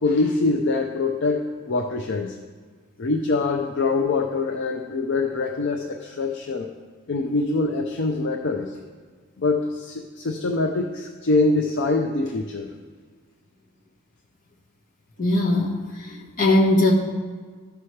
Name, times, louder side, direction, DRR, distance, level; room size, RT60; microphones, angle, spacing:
voice 1, 0.0-2.4 3.0-6.7 7.1-8.7 9.4-12.7, left 3 dB, 55° left, 3 dB, 0.5 m, -24 dB
voice 2, 15.2-15.7 16.1-16.9, left 1 dB, 40° left, -3 dB, 1.5 m, -19 dB
14.0 x 5.8 x 3.2 m, 1.5 s
head